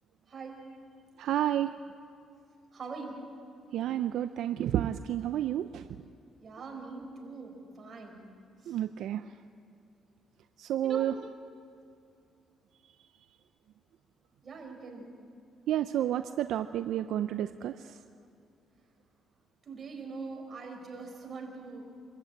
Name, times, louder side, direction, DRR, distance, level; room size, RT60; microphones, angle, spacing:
voice 1, 0.3-0.7 2.7-3.1 6.4-8.3 8.6-8.8 10.8-11.1 14.4-15.1 19.6-21.8, right 4 dB, 45° right, 1 dB, 5.1 m, -43 dB
voice 2, 1.2-1.8 3.7-5.9 8.7-9.3 10.6-11.1 15.7-18.0, right 11 dB, 80° right, 10 dB, 0.5 m, -30 dB
25.5 x 14.0 x 8.8 m, 2.5 s
cardioid pair, 90°, 0 cm